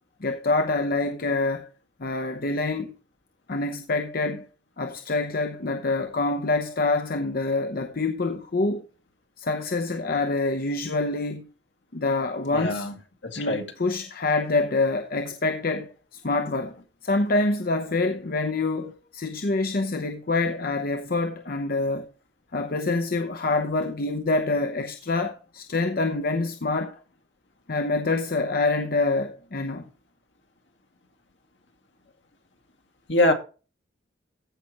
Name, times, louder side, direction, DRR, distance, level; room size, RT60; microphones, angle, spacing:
voice 1, 0.2-1.7 2.0-2.9 3.5-4.5 4.8-8.8 9.4-11.5 11.9-12.9 13.4-16.8 17.0-22.1 22.5-27.0 27.7-29.9, left 3 dB, 50° left, 0.8 m, -26 dB
voice 2, 12.5-12.9 13.2-13.7 33.1-33.3, left 1 dB, 65° left, 2.2 m, -23 dB
15.0 x 5.8 x 3.0 m
head